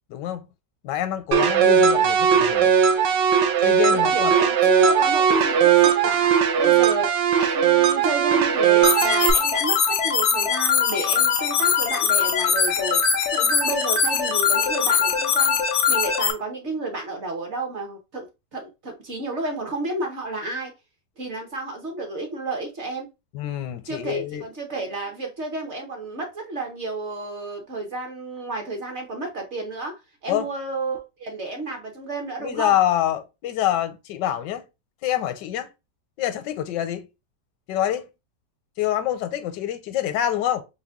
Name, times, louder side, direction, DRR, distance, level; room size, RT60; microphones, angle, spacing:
voice 1, 0.1-0.5 0.8-2.7 3.6-4.3 23.3-24.4 30.3-30.5 32.4-34.6 35.0-35.7 36.2-37.1 37.7-38.1 38.8-40.6, left 12 dB, 80° left, 1.2 m, -26 dB
sound 1, 1.3-9.3, right 8 dB, 85° right, 1.3 m, -18 dB
voice 2, 3.9-6.3 6.6-7.1 7.4-9.8 10.0-13.0 13.3-15.6 15.9-18.3 18.5-20.7 21.2-23.1 23.9-29.9 30.2-32.8, right 2 dB, 50° right, 0.9 m, -31 dB
sound 2, 8.8-16.3, left 6 dB, 65° left, 0.7 m, -21 dB
4.2 x 2.2 x 3.4 m
omnidirectional pair, 1.9 m